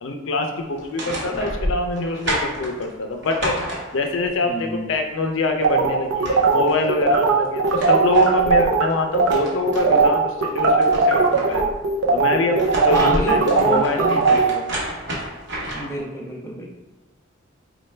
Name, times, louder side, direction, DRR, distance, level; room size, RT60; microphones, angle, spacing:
voice 1, 0.0-3.7 3.9-11.7 12.1-14.7, left 2 dB, 70° left, 4 dB, 0.5 m, -24 dB
sound 1, 0.7-4.3 5.7-5.8 6.0-6.9 7.4-10.1 10.5-11.8 12.4-16.0, right 1 dB, 60° right, 0.9 m, -30 dB
voice 2, 1.0-1.5 4.4-4.9 12.9-14.2 15.7-16.7, equal, 15° left, -2 dB, 0.5 m, -28 dB
sound 2, 5.6-8.8 9.1-9.4 9.7-14.5, right 4 dB, 75° right, 0.5 m, -18 dB
4.2 x 2.2 x 3.2 m, 1.2 s
head